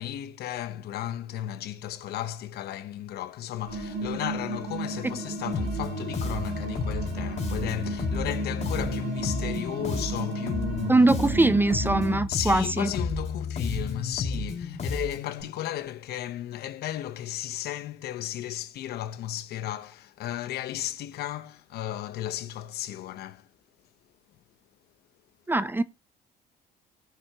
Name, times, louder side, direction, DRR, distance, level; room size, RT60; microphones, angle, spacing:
voice 1, 0.0-11.0 11.2-11.5 12.3-23.5, left 12 dB, 70° left, 1.1 m, -34 dB
sound 1, 3.7-12.2, right 2 dB, 90° right, 6.6 m, -34 dB
Bass guitar, 5.5-15.4, left 3 dB, 40° left, 3.7 m, -32 dB
voice 2, 10.9-12.9 25.5-25.8, right 2 dB, 10° right, 0.5 m, -22 dB
19.0 x 6.9 x 3.0 m
cardioid pair, 110°, 17 cm